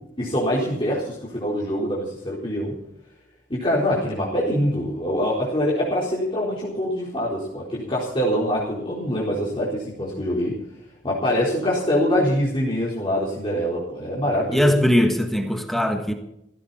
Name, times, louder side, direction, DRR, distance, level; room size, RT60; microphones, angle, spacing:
voice 1, 0.2-2.7 3.5-10.6 11.0-14.7, equal, 25° left, -6 dB, 4.2 m, -24 dB
voice 2, 14.5-16.1, equal, ahead, 4 dB, 1.5 m, -20 dB
16.5 x 16.5 x 4.3 m, 0.81 s
head